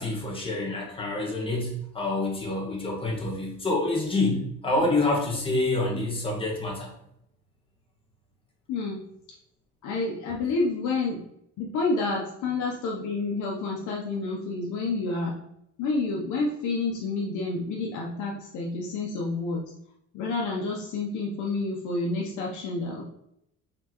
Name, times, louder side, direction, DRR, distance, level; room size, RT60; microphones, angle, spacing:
voice 1, 0.0-6.9, left 2 dB, 20° left, -2 dB, 1.2 m, -27 dB
voice 2, 8.7-9.0 9.8-11.2 11.6-15.4 15.8-19.6 20.1-23.0, left 3 dB, 75° left, -2 dB, 0.8 m, -29 dB
4.3 x 3.7 x 3.0 m, 0.75 s
cardioid pair, 140°, 30 cm